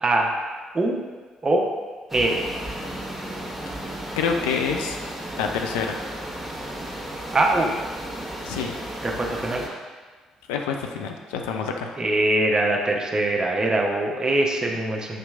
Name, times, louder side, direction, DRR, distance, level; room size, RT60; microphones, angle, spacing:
voice 1, 0.0-0.3 0.7-1.0 1.4-1.7 2.1-2.4 7.3-7.7 9.0-9.7 12.0-15.2, right 2 dB, 30° right, 0 dB, 0.7 m, -22 dB
sound 1, 2.1-9.7, right 1 dB, 5° right, 1.0 m, -34 dB
voice 2, 4.2-5.0 5.4-6.0 8.4-8.8 10.5-12.0, left 6 dB, 75° left, 3 dB, 0.3 m, -27 dB
6.5 x 2.9 x 2.3 m, 1.4 s
figure-of-eight pair, 45°, 3 cm